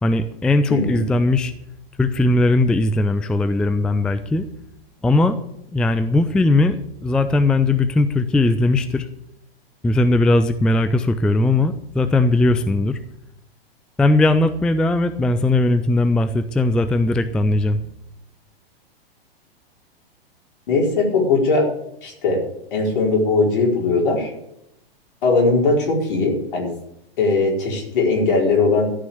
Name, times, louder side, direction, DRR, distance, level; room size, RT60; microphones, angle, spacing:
voice 1, 0.0-1.5 2.0-4.5 5.0-5.4 5.7-6.8 7.0-9.1 9.8-13.0 14.0-17.8, left 2 dB, 5° left, 10 dB, 0.4 m, -18 dB
voice 2, 0.7-1.0 20.7-21.7 22.0-22.4 22.7-24.3 25.2-26.7 27.2-28.9, left 3 dB, 60° left, -1 dB, 4.7 m, -19 dB
13.0 x 6.2 x 8.5 m, 0.79 s
figure-of-eight pair, 100°, 30 cm